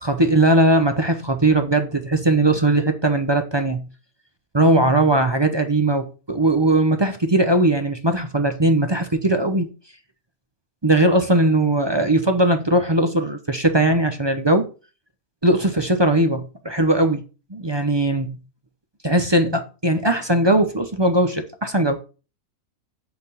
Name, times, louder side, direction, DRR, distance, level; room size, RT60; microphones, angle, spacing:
voice 1, 0.0-3.8 4.5-9.7 10.8-14.7 15.4-17.2 17.5-18.4 19.0-22.0, right 1 dB, 25° right, 0.6 m, -19 dB
8.2 x 4.1 x 6.9 m
omnidirectional pair, 1.6 m